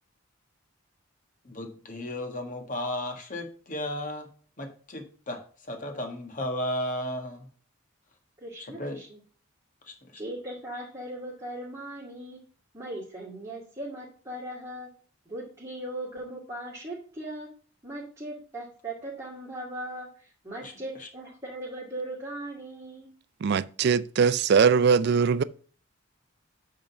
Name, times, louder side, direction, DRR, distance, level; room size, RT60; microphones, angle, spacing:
voice 1, 1.4-4.3 4.6-7.5 8.6-9.0 9.8-10.2 20.6-21.1, left 1 dB, 40° left, 1.5 m, -35 dB
voice 2, 8.4-9.2 10.2-12.4 12.7-14.9 15.3-17.5 17.8-23.1, right 1 dB, 15° right, 2.3 m, -38 dB
voice 3, 23.4-25.4, right 6 dB, 50° right, 0.4 m, -21 dB
8.6 x 3.8 x 5.6 m
head